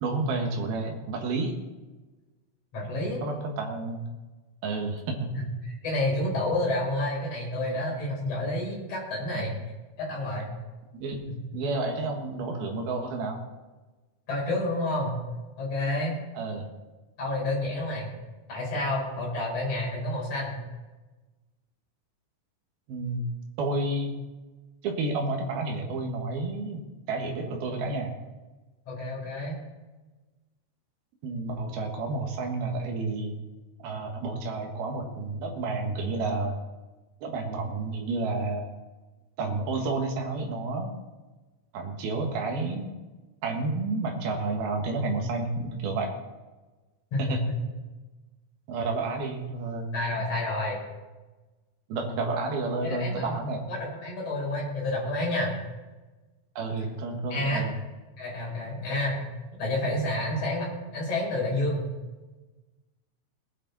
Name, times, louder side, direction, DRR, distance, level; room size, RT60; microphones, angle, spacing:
voice 1, 0.0-1.5 3.2-4.0 4.6-5.3 9.3-9.6 11.0-11.2 11.5-13.4 16.3-16.7 22.9-23.2 23.6-24.1 24.8-26.8 27.1-28.1 31.2-33.3 33.8-36.6 37.2-38.7 39.4-40.9 41.7-42.9 43.4-46.1 47.2-47.4 48.7-49.9 51.9-53.7 56.6-57.7, right 3 dB, 60° right, 2 dB, 2.9 m, -30 dB
voice 2, 2.7-3.2 5.3-9.5 10.0-10.5 11.3-11.4 14.3-15.2 15.6-16.2 17.2-18.1 18.5-20.6 28.9-29.6 47.1-47.5 49.9-50.8 52.8-53.4 53.7-55.5 57.3-57.6 58.2-59.2 59.6-61.9, left 1 dB, 30° left, -4 dB, 5.8 m, -29 dB
20.0 x 10.5 x 4.1 m, 1.2 s
omnidirectional pair, 5.7 m